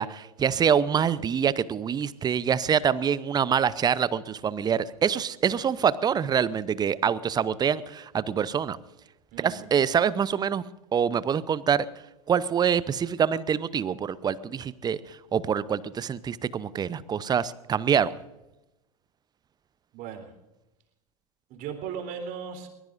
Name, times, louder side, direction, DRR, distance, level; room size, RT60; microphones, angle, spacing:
voice 1, 0.0-8.8 9.4-10.6 10.9-11.9 12.3-18.1, right 7 dB, 20° right, 18 dB, 0.7 m, -25 dB
voice 2, 9.3-9.7 19.9-20.3 21.5-22.7, right 7 dB, 45° right, 5 dB, 3.6 m, -37 dB
22.5 x 20.5 x 2.6 m, 0.96 s
figure-of-eight pair, 90°, 20 cm